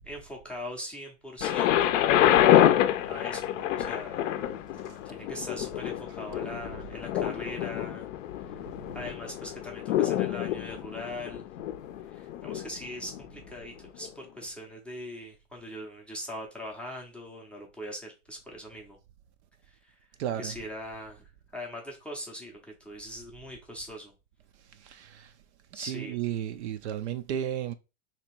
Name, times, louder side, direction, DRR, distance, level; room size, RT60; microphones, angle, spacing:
voice 1, 0.0-2.0 2.3-2.7 3.1-4.2 5.0-8.1 8.4-8.6 8.9-11.4 12.1-19.0 19.7-20.0 20.4-21.2 21.5-24.1 25.7-26.2, left 1 dB, 5° left, 0.5 m, -41 dB
Thunder, 1.4-13.3 14.0-14.1, left 12 dB, 60° left, 0.6 m, -27 dB
voice 2, 20.2-20.5 24.8-25.3 25.7-27.7, right 10 dB, 55° right, 0.5 m, -33 dB
2.9 x 2.8 x 4.4 m
hypercardioid pair, 135°, 44 cm